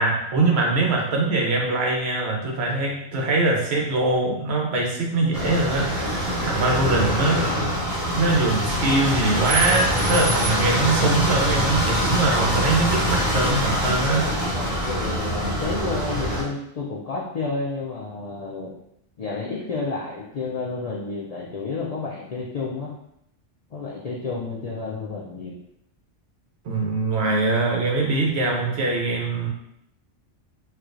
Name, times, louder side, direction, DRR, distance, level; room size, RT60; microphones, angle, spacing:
voice 1, 0.0-7.4 8.1-14.3 26.6-29.5, right 2 dB, 65° right, -1 dB, 0.9 m, -23 dB
sound 1, 5.3-16.4, equal, 40° right, 1.2 m, -24 dB
voice 2, 14.5-18.7 19.2-22.9 23.7-25.6, left 3 dB, 80° left, -4 dB, 0.3 m, -30 dB
4.3 x 2.3 x 2.5 m, 0.77 s
omnidirectional pair, 1.3 m